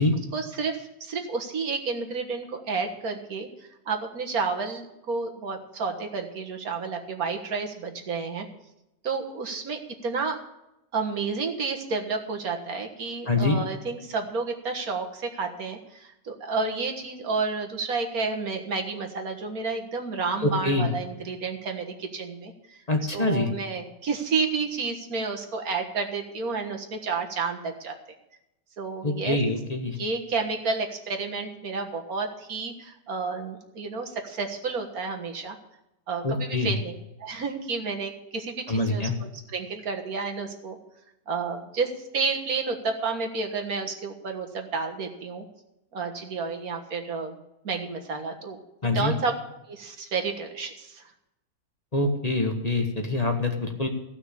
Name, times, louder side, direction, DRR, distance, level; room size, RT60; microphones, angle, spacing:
voice 1, 0.3-8.5 9.0-10.4 10.9-22.8 23.1-28.0 28.8-29.4 30.0-35.6 36.1-36.9 37.2-40.8 41.3-45.4 45.9-47.4 47.6-48.6 48.9-49.3 49.7-51.0, right 4 dB, 80° right, 3 dB, 2.0 m, -31 dB
voice 2, 13.3-13.6 20.4-20.9 22.9-23.5 29.0-30.0 36.2-36.7 38.7-39.2 48.8-49.1 51.9-53.9, left 2 dB, 25° left, 3 dB, 1.4 m, -25 dB
15.5 x 6.0 x 8.4 m, 0.89 s
omnidirectional pair, 1.5 m